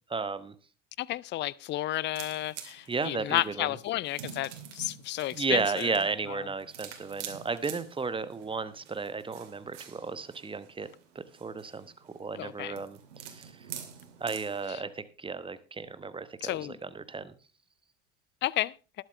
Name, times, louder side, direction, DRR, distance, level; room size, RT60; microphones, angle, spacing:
voice 1, 0.1-0.5 2.9-3.8 5.3-10.9 11.1-13.0 13.2-13.7 14.2-17.3, right 4 dB, 15° right, 1.1 m, -34 dB
voice 2, 1.0-5.9 6.3-6.4 12.4-12.7 14.7-14.8 16.4-16.8 18.4-18.8, left 15 dB, 30° left, 0.5 m, -32 dB
sound 1, 2.1-14.7, right 9 dB, 65° right, 2.6 m, -47 dB
20.0 x 7.8 x 3.2 m
figure-of-eight pair, 65°, 38 cm